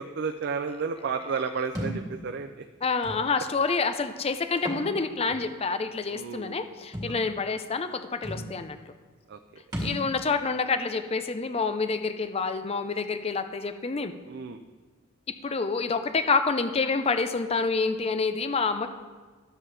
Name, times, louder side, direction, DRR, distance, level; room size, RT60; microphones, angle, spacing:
voice 1, 0.0-2.6 6.1-6.6 9.3-9.4 14.3-14.6, right 5 dB, 55° right, 6 dB, 0.4 m, -32 dB
Thump thud, 1.7-2.0 3.0-3.2 4.5-4.9 5.3-5.4 6.9-7.1 7.9-8.0 8.2-8.5 9.7-10.0, equal, 20° right, 1.9 m, -33 dB
voice 2, 2.8-8.8 9.8-14.1 15.3-18.9, left 4 dB, 30° left, 9 dB, 0.5 m, -28 dB
12.0 x 7.4 x 3.4 m, 1.4 s
head